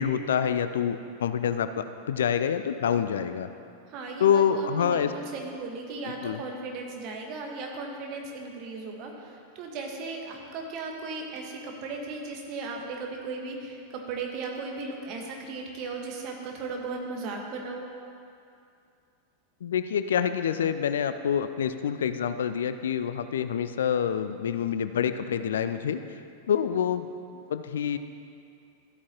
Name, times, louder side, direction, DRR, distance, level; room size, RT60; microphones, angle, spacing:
voice 1, 0.0-3.5 4.2-5.1 6.2-6.4 19.6-26.0 26.5-27.1 27.5-28.0, left 8 dB, 65° left, 11 dB, 0.3 m, -26 dB
voice 2, 3.9-17.8, right 3 dB, 40° right, 1 dB, 1.4 m, -36 dB
13.5 x 8.4 x 2.9 m, 2.5 s
figure-of-eight pair, 90°, 0 cm